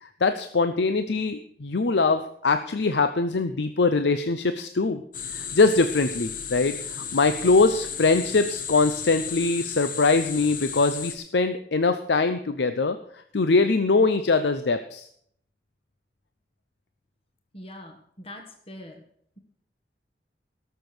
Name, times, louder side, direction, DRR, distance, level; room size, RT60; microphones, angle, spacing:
voice 1, 0.0-5.0 5.3-13.0 13.3-15.1, left 3 dB, 75° left, 9 dB, 0.7 m, -22 dB
sound 1, 5.1-11.1, left 7 dB, 50° left, 1.2 m, -34 dB
voice 2, 17.5-19.0, left 1 dB, 35° left, 3 dB, 1.6 m, -43 dB
18.0 x 6.9 x 6.2 m, 0.65 s
head